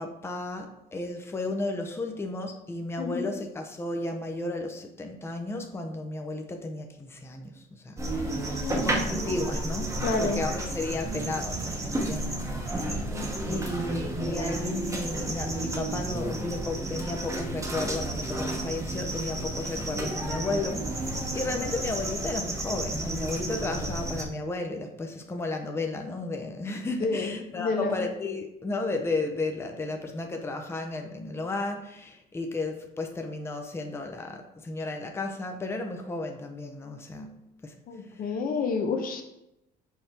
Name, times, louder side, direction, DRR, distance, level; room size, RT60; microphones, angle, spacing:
voice 1, 0.0-13.0 13.5-37.4 37.6-37.7, left 2 dB, 15° left, 3 dB, 0.7 m, -34 dB
voice 2, 3.0-3.3 8.4-8.9 10.0-10.4 13.1-13.3 21.5-21.6 27.0-28.0 37.9-39.2, left 4 dB, 60° left, 4 dB, 0.9 m, -30 dB
sound 1, 8.0-24.3, right 1 dB, 20° right, 1.1 m, -32 dB
5.6 x 4.4 x 4.3 m, 0.84 s
cardioid pair, 110°, 17 cm